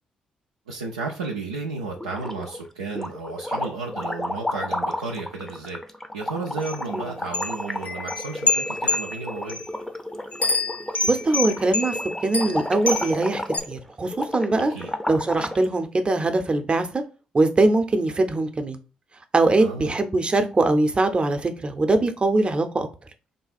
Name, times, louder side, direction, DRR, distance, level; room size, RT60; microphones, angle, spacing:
voice 1, 0.7-5.8 6.1-9.6 14.7-14.9 19.6-20.0, right 3 dB, 85° right, 0.4 m, -33 dB
sound 1, 2.0-2.6 2.9-15.6, left 1 dB, 10° left, 0.6 m, -32 dB
sound 2, 6.6-6.8 7.3-9.7 10.3-13.2 13.5-13.6, left 3 dB, 45° left, 0.7 m, -26 dB
voice 2, 11.0-14.7 15.1-17.0 17.3-18.8 19.3-22.9, right 2 dB, 30° right, 0.7 m, -22 dB
3.4 x 2.3 x 4.1 m
figure-of-eight pair, 45°, 3 cm